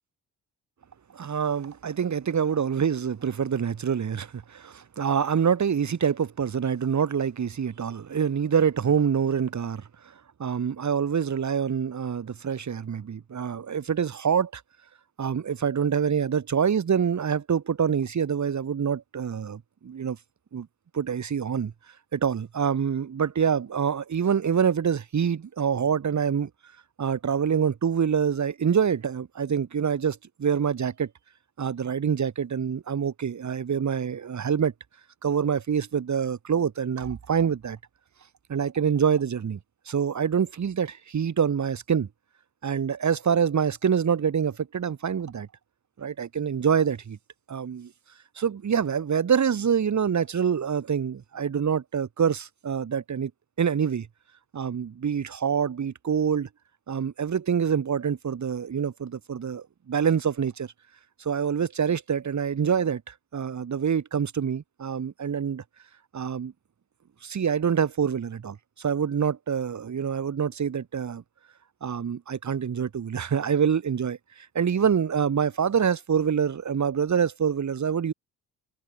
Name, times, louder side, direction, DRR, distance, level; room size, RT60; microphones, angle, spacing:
voice 1, 1.1-9.8 10.4-14.6 15.2-20.2 20.5-20.7 20.9-21.7 22.1-26.5 27.0-31.1 31.6-34.7 35.2-37.8 38.5-39.6 39.9-42.1 42.6-45.5 46.0-47.2 47.5-47.9 48.4-53.3 53.6-54.1 54.5-56.5 56.9-60.7 61.2-65.6 66.1-66.5 67.2-71.2 71.8-78.1, right 7 dB, 50° right, 6.0 m, -26 dB
supercardioid pair, 75°, 38 cm